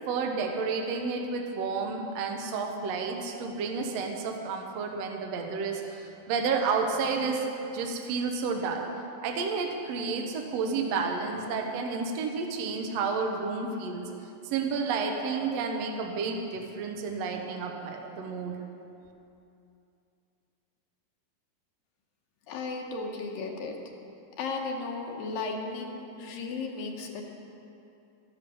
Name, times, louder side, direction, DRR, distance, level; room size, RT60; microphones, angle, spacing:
voice 1, 0.1-7.4 7.7-8.9 9.2-14.1 14.4-18.6, right 4 dB, 65° right, 2 dB, 1.7 m, -31 dB
voice 2, 22.5-23.8 24.4-27.3, left 3 dB, 80° left, 1 dB, 2.9 m, -35 dB
12.5 x 10.5 x 6.9 m, 2.7 s
omnidirectional pair, 4.2 m